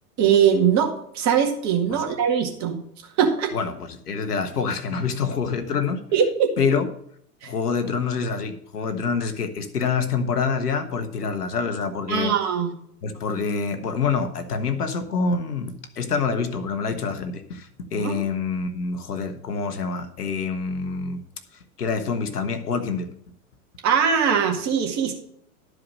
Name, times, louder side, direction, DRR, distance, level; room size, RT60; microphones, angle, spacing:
voice 1, 0.2-2.8 3.2-3.5 6.1-6.5 7.4-7.5 12.1-12.7 18.0-18.2 23.8-25.1, right 7 dB, 35° right, 3 dB, 1.9 m, -21 dB
voice 2, 3.5-6.1 6.6-6.9 7.4-12.4 13.0-21.2 21.8-23.1, left 5 dB, 85° left, 9 dB, 1.3 m, -26 dB
12.5 x 4.9 x 6.5 m, 0.69 s
hypercardioid pair, 100°, 45 cm